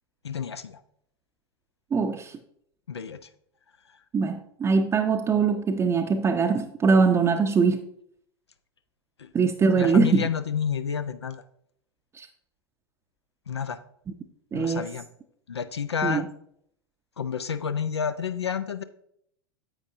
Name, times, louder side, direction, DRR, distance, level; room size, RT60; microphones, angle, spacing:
voice 1, 0.2-0.8 2.9-3.2 9.2-9.3 9.8-11.4 13.5-13.8 14.5-15.1 15.5-16.3 17.2-18.8, left 7 dB, 80° left, 11 dB, 0.5 m, -30 dB
voice 2, 1.9-2.4 4.1-7.8 9.3-10.3 12.2-12.3 14.5-14.9 16.0-16.3, right 5 dB, 20° right, 4 dB, 0.6 m, -22 dB
9.7 x 7.6 x 2.6 m, 0.69 s
figure-of-eight pair, 85°, 14 cm